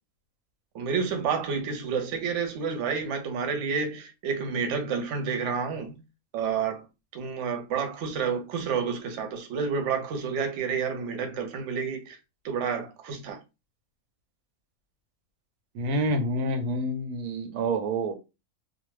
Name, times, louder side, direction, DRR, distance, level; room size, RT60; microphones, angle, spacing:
voice 1, 0.7-5.9 6.3-6.9 7.1-12.2 12.4-13.4, right 6 dB, 65° right, 0.9 m, -29 dB
voice 2, 15.7-18.1, right 1 dB, 90° right, 1.1 m, -28 dB
2.6 x 2.1 x 3.1 m
omnidirectional pair, 1.5 m